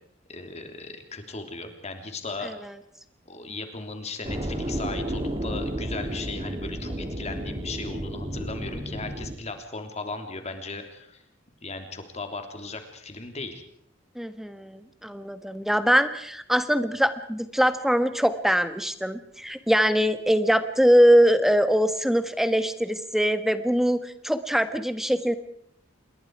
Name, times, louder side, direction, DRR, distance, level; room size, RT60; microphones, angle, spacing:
voice 1, 0.3-2.6 3.3-11.2 11.6-13.6, left 3 dB, 35° left, 6 dB, 3.3 m, -37 dB
sound 1, 4.2-9.3, right 1 dB, 30° right, 2.7 m, -32 dB
voice 2, 14.1-25.4, equal, ahead, 10 dB, 1.4 m, -22 dB
28.0 x 22.0 x 4.8 m, 0.68 s
head